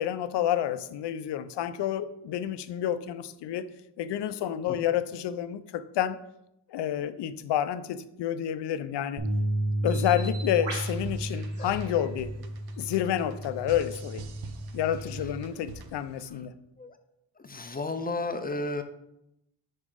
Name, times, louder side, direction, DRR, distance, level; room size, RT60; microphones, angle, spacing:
voice 1, 0.0-3.7 4.0-6.2 6.7-9.2 9.8-12.3 12.8-14.2 14.7-16.5, left 10 dB, 75° left, 13 dB, 0.5 m, -29 dB
sound 1, 9.2-15.4, right 1 dB, 40° right, 1.2 m, -33 dB
Bird, 9.9-16.3, right 2 dB, 90° right, 2.4 m, -46 dB
sound 2, 10.9-16.1, right 5 dB, 60° right, 0.7 m, -45 dB
voice 2, 17.4-18.8, left 2 dB, 20° left, 8 dB, 0.5 m, -32 dB
5.3 x 4.3 x 5.0 m, 0.83 s
cardioid pair, 105°, 42 cm